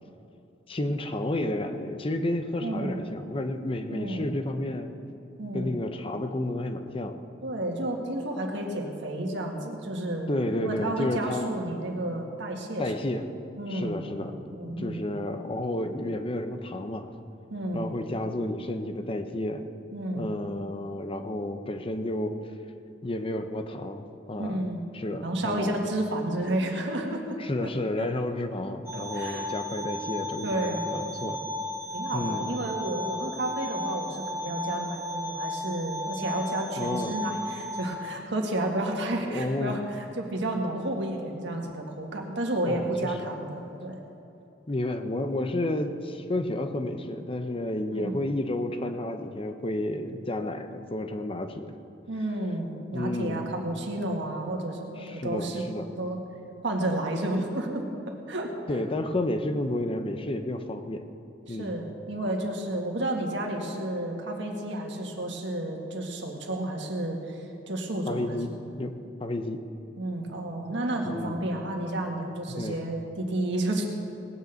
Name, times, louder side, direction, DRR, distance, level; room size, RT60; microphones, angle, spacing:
voice 1, 0.7-4.9 5.5-7.2 10.3-11.5 12.8-13.3 13.7-17.1 17.7-19.6 20.1-22.4 23.0-24.6 24.9-25.7 27.4-31.5 32.1-32.4 36.8-37.1 39.3-39.8 42.6-43.1 44.7-51.8 52.9-53.5 55.0-55.9 58.7-61.0 61.5-61.8 68.1-68.5 68.8-69.6 71.0-71.4 72.5-72.8, left 1 dB, 30° left, 8 dB, 0.7 m, -31 dB
voice 2, 2.6-3.0 3.9-4.3 5.4-5.8 7.4-12.9 13.6-14.1 14.5-15.1 17.5-17.9 19.9-20.3 24.4-24.8 25.2-27.4 28.0-28.1 28.9-29.5 30.4-30.9 31.9-44.0 47.9-48.2 52.1-55.6 56.0-56.2 56.6-58.5 61.5-68.4 70.0-73.8, right 1 dB, 70° right, 1 dB, 1.9 m, -31 dB
sound 1, 28.9-37.8, left 2 dB, 15° right, 1.3 m, -34 dB
19.0 x 6.6 x 8.0 m, 2.7 s
head